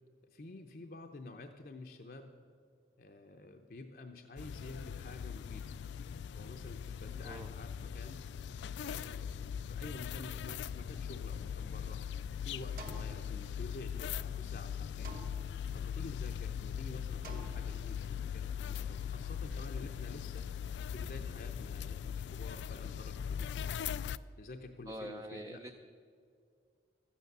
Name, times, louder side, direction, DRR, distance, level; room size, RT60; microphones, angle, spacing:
voice 1, 0.2-2.3 3.0-5.7 6.3-8.2 8.8-12.0 12.4-15.2 15.7-20.5 20.9-23.8 24.4-25.6, left 2 dB, 55° left, 3 dB, 0.6 m, -50 dB
sound 1, 4.4-24.2, left 8 dB, 80° left, 0.3 m, -40 dB
voice 2, 7.2-7.5 24.9-25.7, right 1 dB, 20° right, 5 dB, 0.4 m, -45 dB
sound 2, 11.7-12.1 12.8-14.0 15.0-16.0 17.2-18.2, right 2 dB, 50° right, 1.8 m, -51 dB
13.5 x 9.3 x 6.6 m, 2.2 s
head